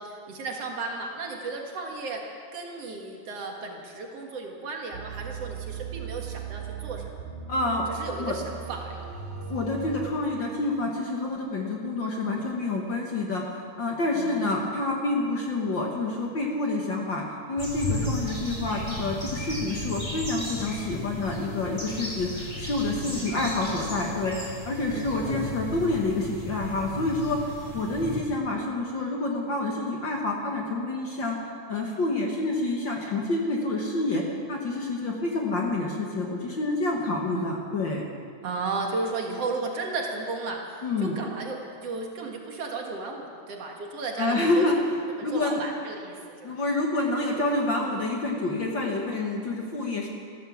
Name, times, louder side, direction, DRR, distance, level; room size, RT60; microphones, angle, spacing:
voice 1, 0.0-2.3 2.5-7.1 7.9-8.4 8.7-9.0 14.1-14.4 23.1-23.3 24.9-25.4 37.3-37.5 38.4-40.7 41.0-44.6 45.2-46.6, right 3 dB, 60° right, 1 dB, 2.6 m, -34 dB
sound 1, 4.9-10.1, right 7 dB, 80° right, 3.2 m, -38 dB
voice 2, 7.5-7.9 8.2-8.4 9.5-31.4 31.7-38.0 40.8-41.2 44.2-45.6 46.4-50.1, left 2 dB, 50° left, 0 dB, 1.8 m, -28 dB
sound 2, 17.6-28.2, left 1 dB, 10° left, 4.2 m, -35 dB
15.0 x 13.5 x 7.1 m, 2.2 s
omnidirectional pair, 3.3 m